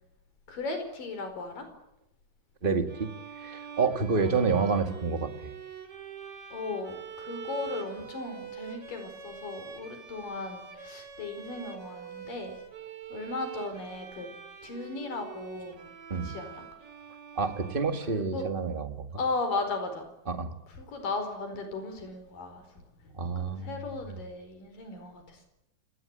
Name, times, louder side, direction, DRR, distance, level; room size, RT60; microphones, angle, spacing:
voice 1, 0.5-1.7 4.2-4.3 6.5-12.6 13.1-14.3 14.6-15.8 16.2-16.6 18.1-18.5 19.2-20.0 20.7-25.4, left 3 dB, 85° left, 7 dB, 6.4 m, -36 dB
voice 2, 2.6-3.1 3.4-5.3 16.1-16.3 17.3-19.1 20.3-20.5 23.2-23.8, right 4 dB, 20° right, 7 dB, 1.6 m, -28 dB
sound 1, 2.9-18.5, right 8 dB, 45° right, 3.6 m, -45 dB
28.5 x 19.5 x 9.1 m, 0.85 s
omnidirectional pair, 3.8 m